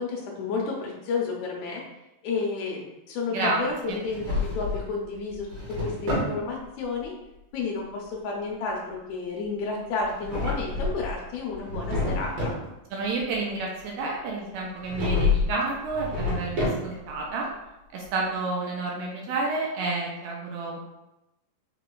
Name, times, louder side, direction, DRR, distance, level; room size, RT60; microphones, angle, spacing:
voice 1, 0.0-1.8 2.2-7.1 7.5-12.5, left 4 dB, 75° left, -1 dB, 1.7 m, -31 dB
voice 2, 3.3-3.6 3.9-4.0 12.9-17.5 17.9-20.8, right 3 dB, 80° right, -2 dB, 2.3 m, -30 dB
Drawer open or close, 3.9-4.9 5.3-6.4 10.0-11.1 11.5-12.6 14.8-15.5 15.9-17.1, left 3 dB, 60° right, 2.5 m, -28 dB
4.9 x 4.5 x 2.3 m, 0.92 s
omnidirectional pair, 4.0 m